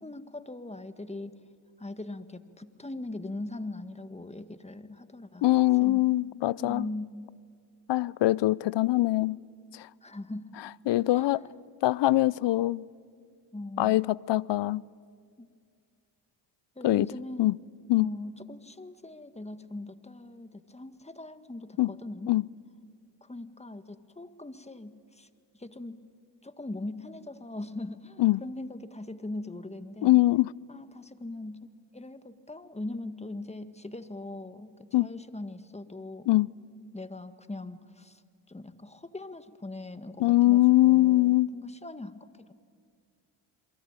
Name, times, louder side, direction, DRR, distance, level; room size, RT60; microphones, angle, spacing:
voice 1, 0.0-1.4 1.8-5.5 5.8-6.0 6.6-7.4 10.0-10.5 11.1-11.4 13.5-14.1 15.4-15.5 16.8-17.6 18.0-22.4 23.2-25.3 25.5-26.0 26.4-30.1 30.7-36.3 36.9-38.2 38.5-42.5, left 2 dB, 15° left, 1.7 m, -40 dB
voice 2, 5.4-6.9 7.9-9.4 9.7-9.9 10.9-11.4 11.8-12.9 13.8-14.8 16.8-17.1 17.4-17.6 17.9-18.1 21.8-21.9 22.3-22.4 28.2-28.4 30.0-30.5 34.9-35.1 36.3-36.5 40.2-41.5, left 17 dB, 60° left, 0.6 m, -23 dB
28.5 x 22.5 x 9.0 m
supercardioid pair, 55°, 48 cm